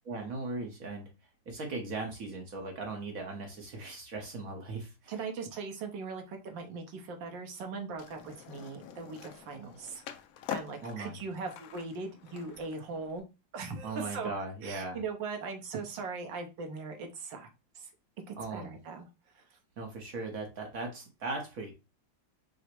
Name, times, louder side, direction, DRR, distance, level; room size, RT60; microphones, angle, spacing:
voice 1, 0.0-1.1 1.5-5.3 10.8-11.2 13.8-15.0 18.4-18.7 19.8-21.7, right 3 dB, 55° right, 2 dB, 1.1 m, -38 dB
voice 2, 5.1-10.0 10.5-13.2 13.5-14.3 14.6-17.5 17.7-17.9 18.3-19.1 19.3-19.6, right 4 dB, 75° right, 4 dB, 1.6 m, -40 dB
Skateboard, 8.0-13.2, left 8 dB, 75° left, 0.8 m, -45 dB
5.0 x 2.0 x 4.4 m, 0.28 s
omnidirectional pair, 2.1 m